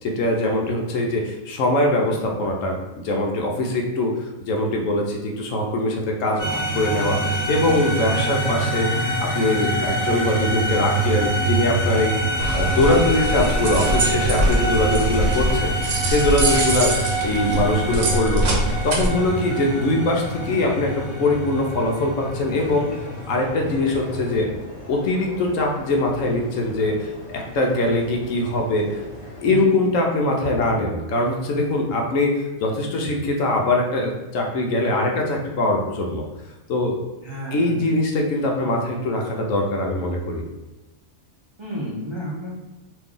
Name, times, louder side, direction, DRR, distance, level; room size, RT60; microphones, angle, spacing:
voice 1, 0.0-12.1 12.5-18.5 18.8-22.9 23.3-24.5 24.9-29.0 29.4-36.2 36.7-36.9 37.5-40.5, left 2 dB, 70° left, 1 dB, 0.9 m, -22 dB
sound 1, 6.4-24.4, right 2 dB, 35° left, 1.2 m, -25 dB
voice 2, 8.0-8.5 19.4-20.0 29.4-29.9 37.2-37.9 41.6-42.5, equal, 50° right, -7 dB, 0.3 m, -32 dB
sound 2, 12.4-19.1, right 1 dB, 65° right, 1.0 m, -23 dB
sound 3, 13.5-29.6, left 1 dB, 50° left, 0.4 m, -40 dB
3.1 x 2.5 x 3.6 m, 1.1 s
omnidirectional pair, 1.5 m